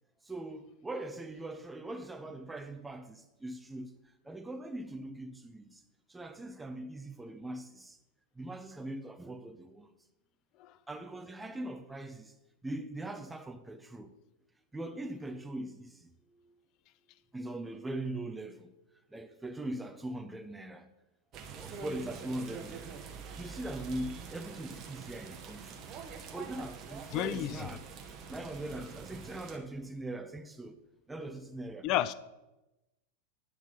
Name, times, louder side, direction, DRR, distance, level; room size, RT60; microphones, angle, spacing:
voice 1, 0.3-3.9 4.2-5.8 6.1-8.0 8.4-9.9 10.9-12.3 12.6-14.1 14.7-16.1 17.3-18.7 19.1-20.9 21.5-23.0 23.4-25.7 26.3-27.8 28.3-30.8 31.1-31.9, right 1 dB, 10° right, 0.6 m, -41 dB
sound 1, 21.3-29.6, right 5 dB, 35° right, 0.8 m, -46 dB
voice 2, 27.1-27.7 31.8-32.1, left 12 dB, 40° left, 0.3 m, -31 dB
9.3 x 3.5 x 5.7 m
figure-of-eight pair, 90°, 0 cm